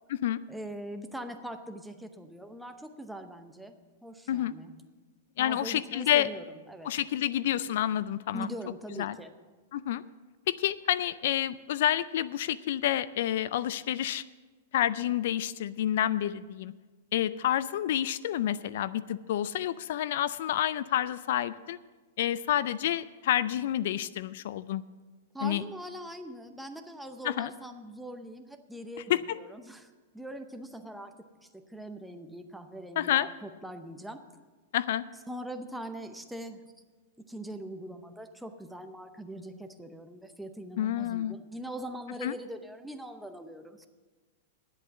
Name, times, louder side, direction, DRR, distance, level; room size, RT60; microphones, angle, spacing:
voice 1, 0.5-3.7 4.0-4.8 5.4-6.9 8.3-9.3 25.3-34.2 35.3-36.6 37.2-43.9, right 1 dB, ahead, 6 dB, 0.7 m, -42 dB
voice 2, 5.4-6.3 6.8-8.5 9.0-9.1 9.7-10.0 10.5-14.2 14.7-16.7 17.1-21.8 22.2-24.8 25.4-25.6 27.2-27.5 29.1-29.4 33.0-33.3 34.7-35.0 40.8-41.4 42.2-42.3, left 12 dB, 60° left, 17 dB, 0.3 m, -29 dB
10.0 x 8.2 x 7.0 m, 1.3 s
supercardioid pair, 150°, 0 cm